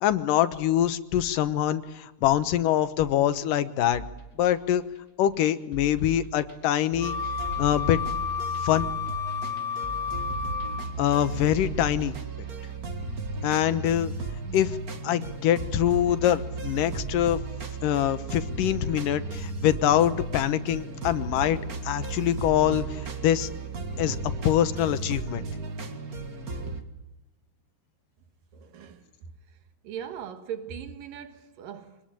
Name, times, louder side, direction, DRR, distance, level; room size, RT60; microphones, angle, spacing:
voice 1, 0.0-4.0 4.4-4.8 5.2-7.2 7.6-8.0 8.6-8.9 11.0-12.2 13.4-14.1 14.5-14.8 15.0-17.4 17.8-21.6 21.8-23.5 24.0-24.2 24.4-25.4, left 11 dB, 75° left, 2.7 m, -24 dB
sound 1, 3.9-12.1, right 3 dB, 10° right, 4.0 m, -43 dB
sound 2, 6.9-26.8, right 3 dB, 35° right, 1.8 m, -35 dB
Wind instrument woodwind instrument, 7.0-11.0, left 6 dB, 30° left, 4.0 m, -31 dB
voice 2, 28.5-29.6 29.8-32.0, right 8 dB, 80° right, 3.1 m, -40 dB
25.0 x 20.5 x 9.0 m
omnidirectional pair, 3.9 m